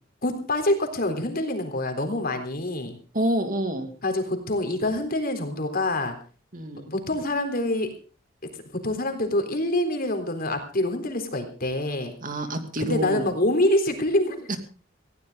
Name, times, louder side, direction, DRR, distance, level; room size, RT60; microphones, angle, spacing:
voice 1, 0.2-3.0 4.0-6.2 6.9-7.9 8.8-12.1 12.8-14.6, left 1 dB, 50° left, 6 dB, 3.8 m, -26 dB
voice 2, 3.1-3.9 6.5-6.9 12.2-13.3 14.5-14.6, right 1 dB, 45° right, 6 dB, 2.6 m, -27 dB
19.5 x 17.0 x 3.9 m, 0.37 s
head